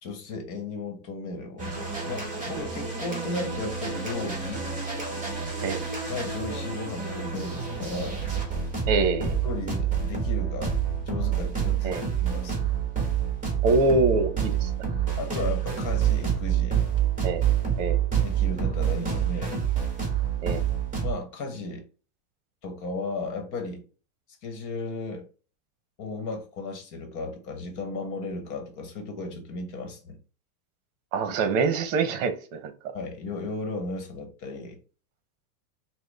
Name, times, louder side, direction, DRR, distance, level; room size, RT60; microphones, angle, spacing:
voice 1, 0.0-4.7 6.1-8.2 9.4-12.7 15.2-16.9 18.2-19.6 21.0-21.8 22.6-23.8 24.4-25.2 26.0-30.2 31.3-31.4 32.9-34.8, left 3 dB, 35° left, 1.2 m, -35 dB
sound 1, 1.6-21.1, right 8 dB, 15° right, 1.5 m, -28 dB
voice 2, 8.9-9.4 11.8-12.0 13.6-14.7 17.2-17.4 17.8-18.0 20.4-20.6 31.1-32.7, right 3 dB, 50° right, 1.0 m, -24 dB
6.0 x 2.2 x 3.4 m
supercardioid pair, 140°, 50 cm